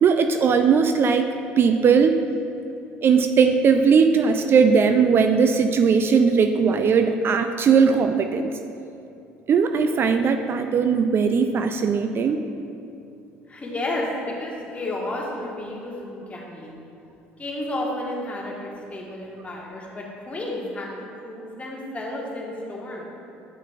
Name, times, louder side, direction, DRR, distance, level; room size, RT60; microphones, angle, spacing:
voice 1, 0.0-1.3 1.6-2.2 3.0-8.5 9.5-12.4, right 6 dB, 45° right, 7 dB, 0.4 m, -19 dB
voice 2, 13.5-16.8 17.4-23.1, left 1 dB, 25° left, -2 dB, 1.4 m, -32 dB
9.1 x 5.6 x 2.5 m, 2.6 s
hypercardioid pair, 65°, 6 cm